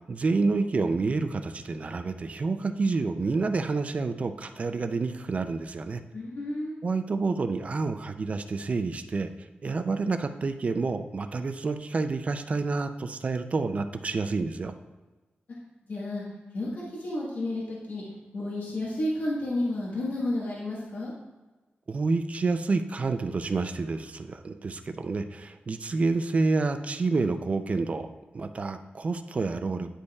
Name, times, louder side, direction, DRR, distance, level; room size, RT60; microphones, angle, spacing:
voice 1, 0.1-6.0 6.8-14.7 21.9-30.0, right 3 dB, 40° right, 9 dB, 0.4 m, -29 dB
voice 2, 6.1-6.8 15.9-16.2 16.5-18.0 18.3-21.1, left 1 dB, 60° left, -6 dB, 1.4 m, -31 dB
9.9 x 5.3 x 2.3 m, 1.2 s
wide cardioid pair, 165°, 4 cm